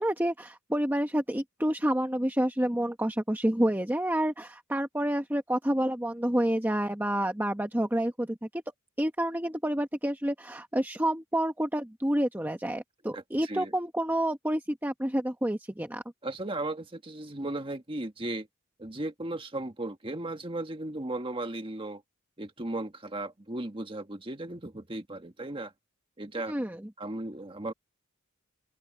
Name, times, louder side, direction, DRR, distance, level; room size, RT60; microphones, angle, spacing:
voice 1, 0.0-8.6 9.0-16.0 26.5-26.8, right 1 dB, 10° right, 1.0 m, -29 dB
voice 2, 13.1-13.8 16.2-18.5 18.8-22.0 22.4-25.7 26.2-26.5 27.0-27.7, right 2 dB, 25° right, 1.6 m, -36 dB
head